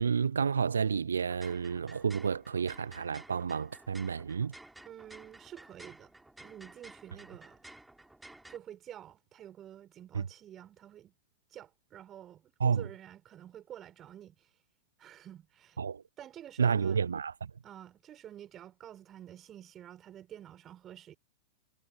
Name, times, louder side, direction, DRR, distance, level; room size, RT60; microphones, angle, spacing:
voice 1, 0.0-4.5 10.1-10.2 12.6-12.9 15.8-16.0 16.6-17.5, right 6 dB, 70° right, 0.5 m, -30 dB
sound 1, 1.3-8.6, right 2 dB, 5° right, 6.5 m, -53 dB
voice 2, 4.8-6.1 6.4-7.6 8.5-11.1 11.5-14.5 15.0-15.8 16.2-17.1 17.6-21.2, right 11 dB, 25° right, 6.0 m, -49 dB
figure-of-eight pair, 95°, 0 cm